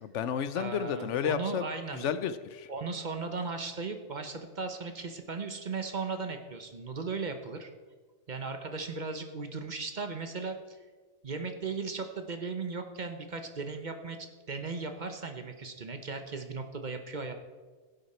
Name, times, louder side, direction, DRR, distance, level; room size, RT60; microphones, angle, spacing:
voice 1, 0.0-1.6 1.9-2.7, left 8 dB, 80° left, 12 dB, 1.0 m, -32 dB
voice 2, 0.5-2.1 2.7-7.7 8.3-10.8 11.2-14.2 14.5-17.3, right 4 dB, 40° right, 6 dB, 1.0 m, -37 dB
17.0 x 7.8 x 4.3 m, 1.4 s
omnidirectional pair, 1.2 m